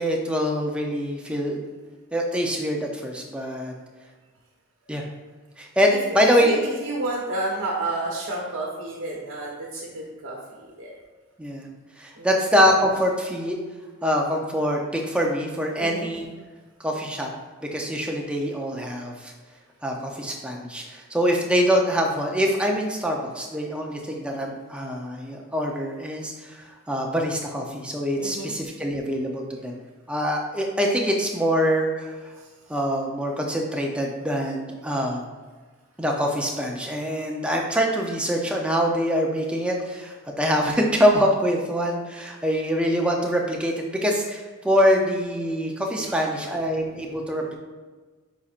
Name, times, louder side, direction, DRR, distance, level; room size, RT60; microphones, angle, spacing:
voice 1, 0.0-1.6 2.1-3.7 4.9-5.0 5.6-6.5 11.4-13.6 14.0-16.3 16.8-17.3 17.7-19.3 19.8-29.8 30.1-32.3 32.7-35.3 36.0-47.5, equal, 5° right, 0 dB, 0.6 m, -24 dB
voice 2, 6.2-10.4 10.8-10.9 12.2-12.3 15.8-16.1 28.2-28.5 32.4-32.5 46.0-46.2, right 2 dB, 90° right, -3 dB, 1.0 m, -31 dB
9.2 x 4.2 x 2.5 m, 1.3 s
head